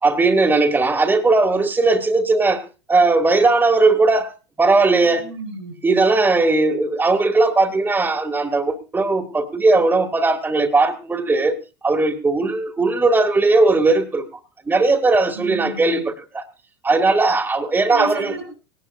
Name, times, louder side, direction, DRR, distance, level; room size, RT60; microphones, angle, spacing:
voice 1, 0.0-2.6 2.9-4.3 4.6-5.3 5.8-11.6 11.8-14.3 14.7-16.4 16.8-18.3, right 3 dB, 15° right, 2.2 m, -18 dB
voice 2, 5.1-5.7 15.3-16.0 17.9-18.5, right 3 dB, 75° right, 4.4 m, -32 dB
20.0 x 18.5 x 2.5 m
figure-of-eight pair, 85°, 14 cm